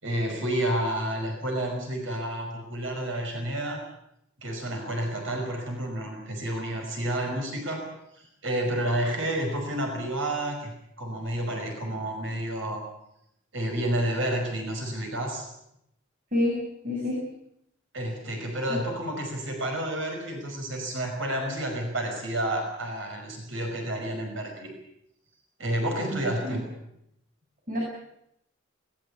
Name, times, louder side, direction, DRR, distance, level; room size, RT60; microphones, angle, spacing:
voice 1, 0.0-3.8 4.4-7.8 8.1-12.8 13.5-15.5 17.9-24.7 25.6-26.6, right 1 dB, 75° right, 2 dB, 5.5 m, -30 dB
voice 2, 16.3-17.3 18.7-18.8 26.1-26.6 27.7-27.8, left 1 dB, 45° right, -3 dB, 7.6 m, -29 dB
21.0 x 19.5 x 8.4 m, 0.78 s
head